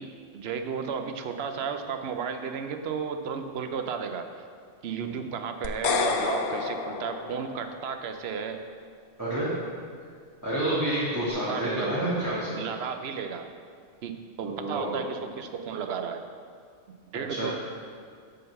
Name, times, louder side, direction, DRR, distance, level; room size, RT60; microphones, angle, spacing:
voice 1, 0.0-4.3 4.8-8.6 11.1-11.2 11.5-12.1 12.6-13.5 14.0-16.3 17.1-17.5, right 6 dB, 70° right, 7 dB, 0.8 m, -33 dB
sound 1, 5.6-7.9, left 5 dB, 60° left, 0.7 m, -29 dB
voice 2, 9.2-9.5 10.4-12.6 14.4-14.9 17.3-17.5, right 1 dB, 15° right, -11 dB, 1.3 m, -29 dB
7.7 x 3.9 x 6.6 m, 2.1 s
omnidirectional pair, 1.2 m